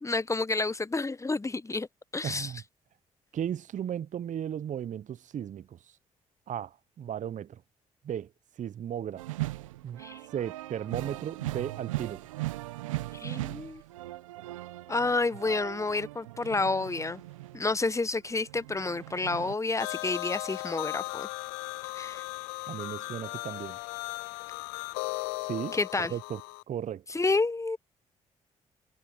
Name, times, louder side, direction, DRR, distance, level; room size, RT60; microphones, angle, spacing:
voice 1, 0.0-1.9 2.1-2.5 10.0-10.2 13.1-13.8 14.9-17.2 17.5-21.3 21.9-22.2 25.7-26.1 27.1-27.8, left 3 dB, 20° left, 1.0 m, -29 dB
voice 2, 2.2-2.6 3.3-5.8 6.5-7.6 8.0-8.3 8.6-9.2 9.8-10.0 10.3-12.3 22.7-23.8 25.4-26.4 26.7-27.0, right 9 dB, 50° right, 0.7 m, -35 dB
sound 1, 9.2-17.9 18.3-19.6, right 18 dB, 90° right, 1.0 m, -38 dB
sound 2, 19.8-26.6, left 31 dB, 80° left, 0.5 m, -37 dB
hypercardioid pair, 45°, 16 cm